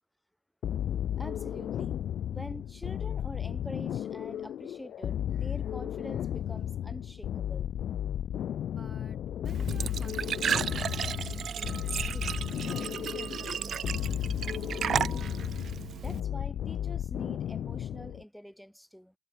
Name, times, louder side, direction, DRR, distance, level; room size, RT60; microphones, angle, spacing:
sound 1, 0.6-18.2, left 10 dB, 70° left, 0.5 m, -34 dB
voice 1, 1.2-2.0 2.3-7.7 12.7-12.9 16.0-19.1, equal, ahead, 3.7 m, -45 dB
sound 2, 6.3-12.0, right 13 dB, 80° right, 7.4 m, -74 dB
voice 2, 8.7-14.7, right 2 dB, 15° right, 1.9 m, -52 dB
Glass / Trickle dribble / Fill (with liquid), 9.4-16.2, right 8 dB, 60° right, 0.4 m, -34 dB
cardioid pair, 90°, 0 cm